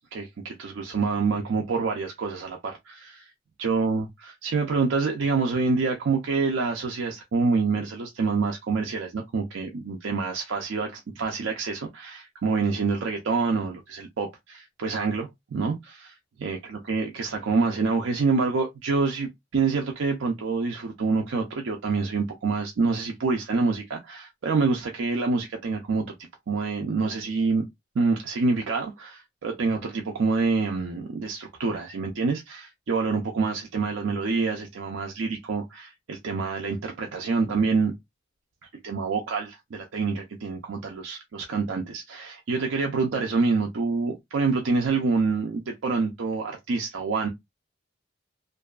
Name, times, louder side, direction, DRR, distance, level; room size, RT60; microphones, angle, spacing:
voice 1, 0.1-3.3 3.6-16.1 16.4-26.0 26.5-27.6 28.0-37.9 38.8-47.3, right 4 dB, 85° right, 0.5 m, -27 dB
2.6 x 2.3 x 2.3 m
head